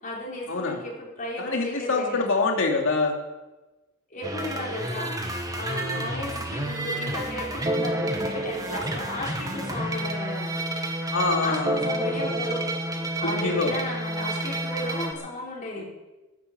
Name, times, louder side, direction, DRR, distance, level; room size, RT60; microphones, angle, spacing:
voice 1, 0.0-2.4 4.1-10.6 11.4-15.8, left 2 dB, 40° left, -4 dB, 5.4 m, -35 dB
voice 2, 1.4-3.1 5.8-6.0 11.1-11.8 13.2-13.7 15.8-15.9, left 3 dB, 65° left, 1 dB, 2.9 m, -25 dB
sound 1, 4.2-15.1, right 1 dB, 15° right, 1.9 m, -29 dB
16.0 x 10.5 x 7.2 m, 1.1 s
head